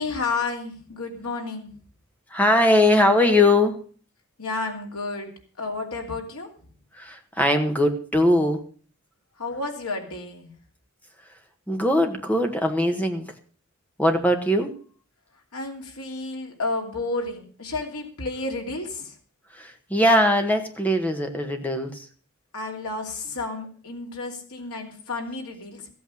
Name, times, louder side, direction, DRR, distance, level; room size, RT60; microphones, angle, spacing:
voice 1, 0.0-1.7 4.4-6.5 9.4-10.5 15.5-19.1 22.5-25.9, left 3 dB, 80° left, 2 dB, 3.0 m, -31 dB
voice 2, 2.3-3.8 6.9-8.6 11.7-13.3 14.0-14.7 19.5-22.1, left 1 dB, 5° left, 5 dB, 1.5 m, -21 dB
15.0 x 8.6 x 6.5 m, 0.43 s
head